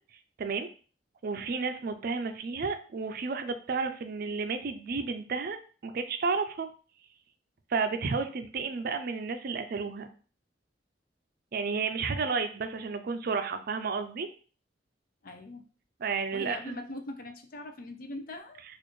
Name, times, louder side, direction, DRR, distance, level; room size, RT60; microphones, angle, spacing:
voice 1, 1.2-5.6 5.8-6.7 7.7-10.1 11.5-14.3 16.0-16.8, right 4 dB, 55° right, 8 dB, 0.4 m, -32 dB
voice 2, 15.2-15.6 16.3-18.6, left 1 dB, 50° left, 6 dB, 0.5 m, -41 dB
4.2 x 2.5 x 3.1 m, 0.39 s
head